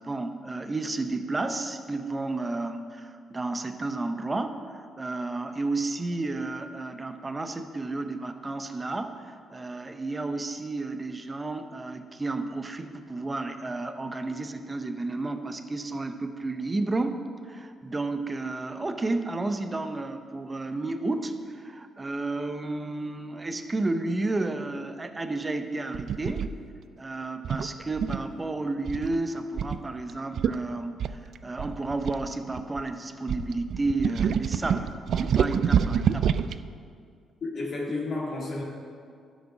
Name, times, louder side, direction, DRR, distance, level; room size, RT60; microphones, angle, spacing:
voice 1, 0.0-26.5 27.0-36.3, right 2 dB, 25° right, 8 dB, 0.7 m, -32 dB
sound 1, 25.9-26.5 27.4-28.3 28.9-29.1 29.6-29.8 30.1-30.2 30.4-30.6 31.0-32.8 33.3-36.6, right 8 dB, 65° right, 0.3 m, -27 dB
voice 2, 37.4-38.6, left 3 dB, 55° left, -3 dB, 2.3 m, -31 dB
11.5 x 6.3 x 6.0 m, 2.2 s
cardioid pair, 90°, 0 cm